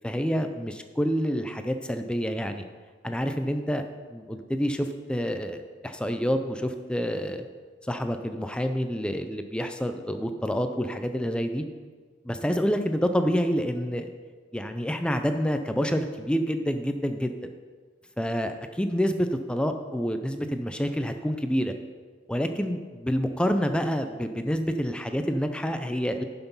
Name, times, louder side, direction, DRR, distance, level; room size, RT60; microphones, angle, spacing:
voice 1, 0.0-2.6 3.0-3.8 4.1-7.4 7.9-11.6 12.2-14.1 14.5-17.3 18.2-21.7 22.3-26.2, equal, 5° left, 7 dB, 0.4 m, -28 dB
10.5 x 5.9 x 5.4 m, 1.5 s
head